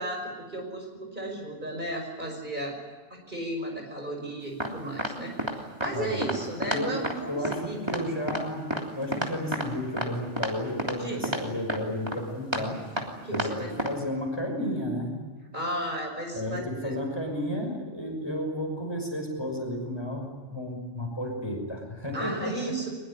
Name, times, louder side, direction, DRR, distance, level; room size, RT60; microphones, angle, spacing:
voice 1, 0.0-2.8 3.1-7.9 11.0-11.3 13.1-13.9 15.5-17.0 22.1-22.9, right 1 dB, 40° right, 2 dB, 5.8 m, -34 dB
sound 1, 4.6-4.7 5.0-5.1 5.4-5.5 5.8-5.9 6.2-6.4 6.6-6.8 7.0-7.1 7.5-7.6 7.9-8.0 8.3-8.4 8.7-8.8 9.1-9.7 10.0-10.1 10.4-10.5 10.8-11.0 11.2-11.4 11.7-11.8 12.1-12.2 12.5-12.6 13.0-13.1 13.3-13.5 13.8-13.9, right 1 dB, 20° right, 3.2 m, -29 dB
voice 2, 6.7-7.0 7.3-12.8 13.3-15.2 16.3-22.7, left 1 dB, 20° left, 2 dB, 5.7 m, -32 dB
22.5 x 21.5 x 10.0 m, 1.4 s
omnidirectional pair, 1.2 m